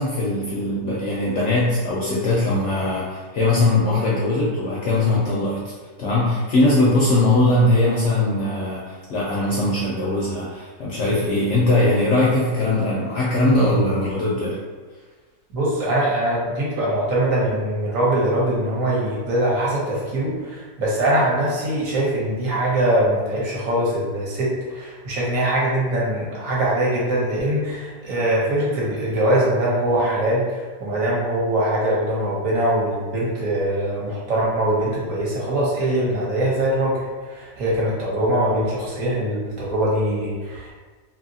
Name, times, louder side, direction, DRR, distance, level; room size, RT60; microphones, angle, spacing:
voice 1, 0.0-5.6 6.0-14.6, left 2 dB, 70° left, -6 dB, 0.7 m, -20 dB
voice 2, 15.5-37.0 37.3-40.7, right 1 dB, 60° right, -6 dB, 1.1 m, -22 dB
2.8 x 2.7 x 2.6 m, 1.4 s
omnidirectional pair, 1.7 m